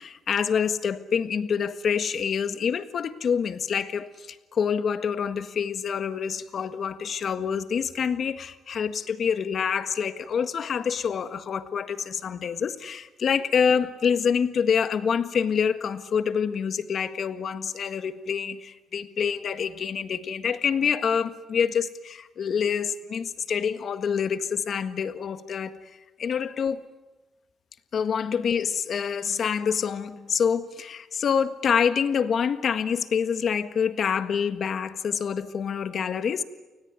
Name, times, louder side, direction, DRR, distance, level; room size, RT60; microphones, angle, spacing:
voice 1, 0.0-25.8 26.2-26.8 27.9-36.4, left 7 dB, 60° left, 10 dB, 1.6 m, -26 dB
29.0 x 19.5 x 9.7 m, 1.2 s
cardioid pair, 90°, 0 cm